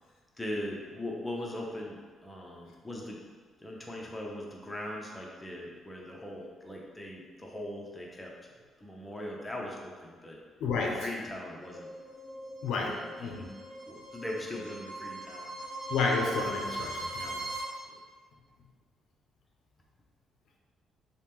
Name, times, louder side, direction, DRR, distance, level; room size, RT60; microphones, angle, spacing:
voice 1, 0.4-2.0 2.2-3.2 3.6-8.3 8.8-10.4 10.9-11.9 12.8-13.4 13.9-15.5, left 1 dB, 10° left, -2 dB, 0.5 m, -40 dB
voice 2, 10.6-11.1 12.6-13.5 15.9-17.4, left 4 dB, 80° left, 0 dB, 0.4 m, -31 dB
sound 1, 11.6-17.6, right 2 dB, 55° right, 0.9 m, -40 dB
2.9 x 2.1 x 3.4 m, 1.5 s
cardioid pair, 90°, 0 cm